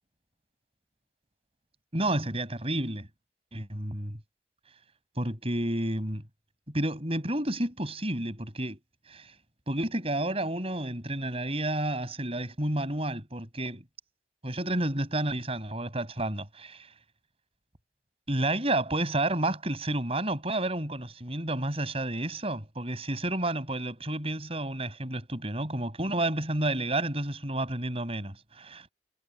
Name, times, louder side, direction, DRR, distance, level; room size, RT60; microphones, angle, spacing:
voice 1, 1.9-3.1 3.5-4.2 5.2-6.2 6.7-8.8 9.1-9.3 9.7-13.8 14.4-16.9 18.3-28.9, right 1 dB, 35° right, 7.6 m, -30 dB
head